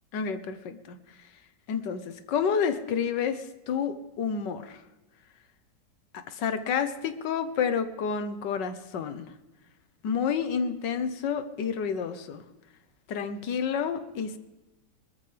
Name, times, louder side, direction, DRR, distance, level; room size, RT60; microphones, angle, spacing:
voice 1, 0.1-1.0 1.7-4.8 6.1-9.3 10.0-12.4 13.1-14.4, left 6 dB, 90° left, 11 dB, 1.7 m, -29 dB
21.0 x 14.0 x 3.4 m, 1.0 s
omnidirectional pair, 1.8 m